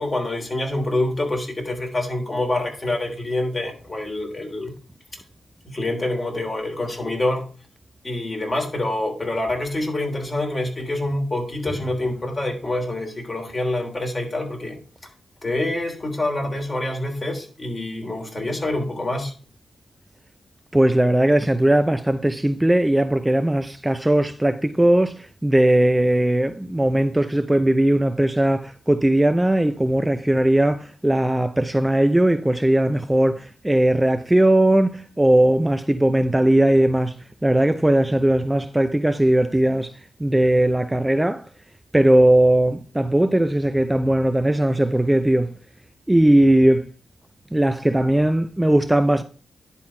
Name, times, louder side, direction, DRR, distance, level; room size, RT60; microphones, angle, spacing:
voice 1, 0.0-4.7 5.6-7.5 8.0-14.8 15.4-19.3, left 1 dB, 35° left, 3.2 m, -26 dB
voice 2, 20.7-37.2 37.4-39.9 40.2-41.5 41.9-45.5 46.1-46.9 47.5-49.2, right 1 dB, 15° right, 0.6 m, -18 dB
10.5 x 4.2 x 4.7 m
supercardioid pair, 45°, 0 cm